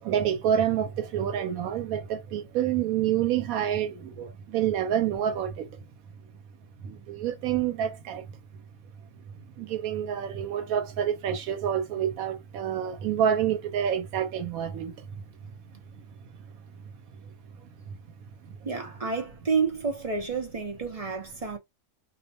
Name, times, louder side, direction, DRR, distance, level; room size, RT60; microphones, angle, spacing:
voice 1, 0.0-5.7 6.8-8.3 9.6-14.9 17.9-18.0, right 9 dB, 85° right, 1.0 m, -28 dB
voice 2, 18.6-21.6, right 5 dB, 45° right, 0.5 m, -29 dB
2.5 x 2.1 x 2.8 m
omnidirectional pair, 1.4 m